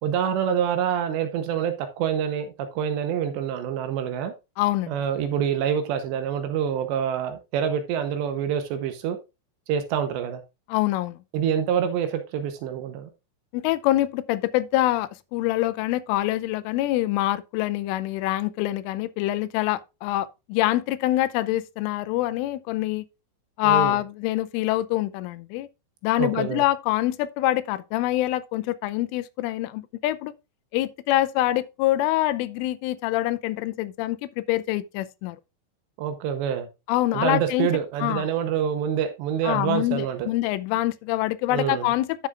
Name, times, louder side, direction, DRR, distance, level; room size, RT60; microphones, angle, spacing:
voice 1, 0.0-4.3 4.9-9.2 9.7-10.4 11.3-13.1 23.6-24.0 26.2-26.6 36.0-36.7 37.1-40.3 41.5-41.9, right 8 dB, 75° right, 2.9 m, -26 dB
voice 2, 4.6-4.9 10.7-11.2 13.5-23.0 23.6-25.7 26.0-30.3 30.7-35.4 36.9-37.7 38.0-38.2 39.4-42.3, left 15 dB, 85° left, 3.1 m, -25 dB
12.0 x 7.0 x 2.4 m
omnidirectional pair, 5.6 m